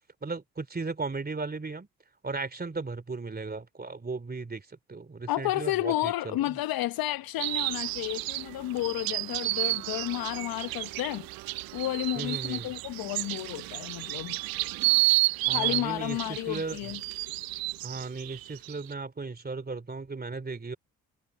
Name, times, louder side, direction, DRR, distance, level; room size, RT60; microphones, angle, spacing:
voice 1, 0.2-1.9 2.2-6.6 12.1-12.7 15.4-16.9 17.8-20.8, right 3 dB, 25° right, 3.0 m, -36 dB
voice 2, 5.3-14.4 15.5-17.0, left 16 dB, 60° left, 1.0 m, -32 dB
sound 1, 7.4-18.9, right 21 dB, 60° right, 0.6 m, -31 dB
hypercardioid pair, 50°, 39 cm